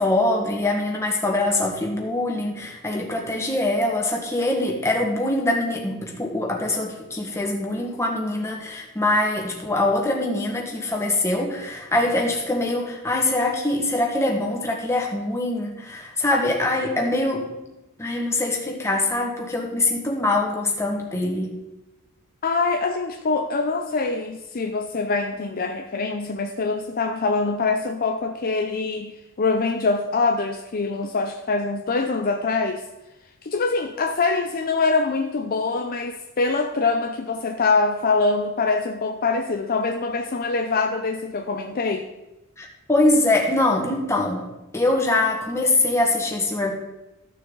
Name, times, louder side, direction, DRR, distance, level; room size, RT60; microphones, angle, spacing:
voice 1, 0.0-17.5 18.0-21.6 42.6-46.7, left 2 dB, 10° left, 1.6 m, -23 dB
voice 2, 22.4-32.8 33.4-42.1, left 3 dB, 40° left, 0.5 m, -24 dB
14.0 x 6.6 x 3.9 m
head